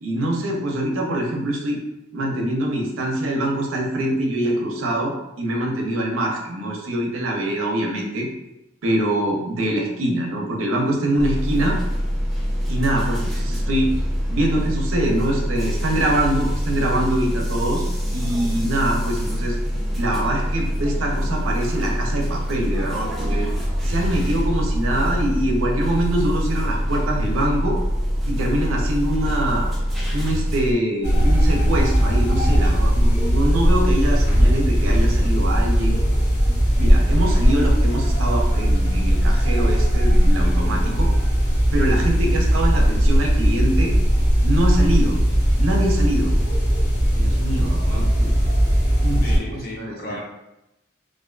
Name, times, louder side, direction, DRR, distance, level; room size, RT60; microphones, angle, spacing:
voice 1, 0.0-1.8 2.1-8.3 8.8-11.8 12.7-13.9 14.3-19.6 20.0-23.5 23.8-27.8 28.3-29.7 30.1-36.0 36.8-41.1 41.7-43.9 44.4-45.2 45.6-46.3 47.1-48.3 49.0-49.2 49.5-50.2, right 1 dB, 90° right, 0 dB, 0.5 m, -24 dB
sound 1, 11.2-30.7, equal, ahead, 0.3 m, -24 dB
sound 2, 31.0-49.4, equal, 90° left, 1.1 m, -18 dB
voice 2, 42.2-42.6 47.8-48.0 49.2-50.2, left 1 dB, 50° left, -3 dB, 0.6 m, -36 dB
2.4 x 2.3 x 2.2 m, 0.91 s
head